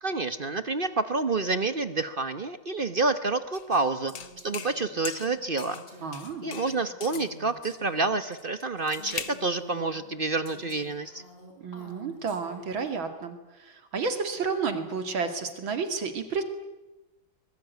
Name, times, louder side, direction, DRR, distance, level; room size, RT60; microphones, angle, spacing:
voice 1, 0.0-5.8 6.4-11.2, right 3 dB, 40° right, 12 dB, 0.7 m, -28 dB
sound 1, 3.5-3.8 4.1-4.8 5.0-5.9 6.1-7.3 8.3-9.4, left 9 dB, 75° left, 2.1 m, -40 dB
Female speech woman speaking, 4.1-8.3 8.9-12.9, equal, 25° left, 5.2 m, -49 dB
voice 2, 6.0-6.5 11.6-16.4, right 5 dB, 70° right, 8 dB, 3.0 m, -31 dB
23.5 x 21.5 x 9.4 m, 1.0 s
omnidirectional pair, 2.2 m